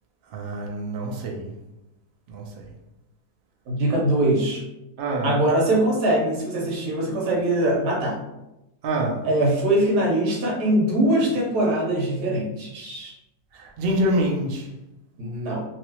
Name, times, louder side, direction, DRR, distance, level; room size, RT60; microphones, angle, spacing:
voice 1, 0.3-1.5 2.3-2.4 5.0-5.4 8.8-9.2 13.5-14.7, right 1 dB, 65° right, 0 dB, 0.5 m, -26 dB
voice 2, 3.7-4.6 5.2-8.2 9.2-13.1 15.2-15.7, right 1 dB, 85° right, -2 dB, 1.5 m, -22 dB
3.0 x 2.7 x 2.9 m, 0.93 s
omnidirectional pair, 1.7 m